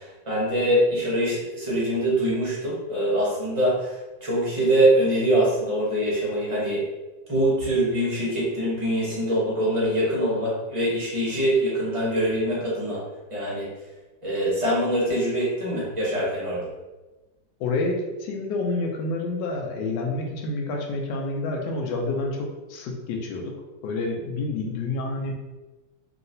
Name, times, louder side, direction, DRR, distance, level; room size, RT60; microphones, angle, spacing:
voice 1, 0.0-3.9 4.2-6.8 7.3-13.0 13.3-13.7 14.2-16.7, right 1 dB, 30° right, -7 dB, 0.6 m, -23 dB
voice 2, 17.6-23.5 23.8-25.3, left 2 dB, 75° left, 1 dB, 1.2 m, -28 dB
3.0 x 2.8 x 2.7 m, 1.1 s
omnidirectional pair, 2.1 m